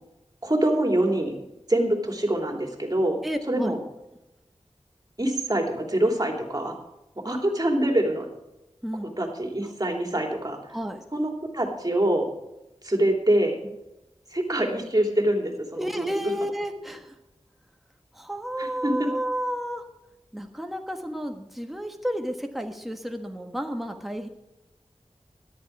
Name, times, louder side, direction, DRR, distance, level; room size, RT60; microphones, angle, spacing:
voice 1, 0.4-1.3 1.7-3.2 3.5-3.8 5.2-6.7 7.2-8.3 9.0-10.6 11.1-12.3 12.8-13.6 14.3-16.1 18.6-19.1, right 1 dB, 35° right, 3 dB, 3.2 m, -25 dB
voice 2, 3.2-3.7 7.2-7.4 8.8-9.1 10.7-11.0 15.8-17.2 18.1-19.8 20.3-24.3, equal, ahead, 4 dB, 1.4 m, -31 dB
13.5 x 11.5 x 4.8 m, 0.93 s
wide cardioid pair, 45°, 11 cm